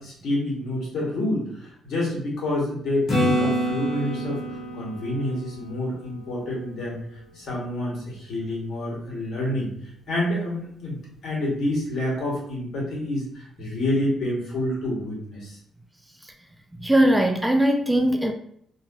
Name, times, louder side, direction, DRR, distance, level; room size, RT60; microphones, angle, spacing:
voice 1, 0.0-7.0 7.3-9.7 10.1-11.0 11.2-15.6, left 1 dB, 70° left, -4 dB, 1.5 m, -28 dB
Acoustic guitar / Strum, 3.1-6.8 11.7-11.8, equal, 50° left, 1.0 m, -28 dB
voice 2, 16.8-18.3, right 1 dB, 10° right, 3 dB, 0.4 m, -20 dB
2.9 x 2.7 x 2.6 m, 0.68 s
cardioid pair, 90°, 0 cm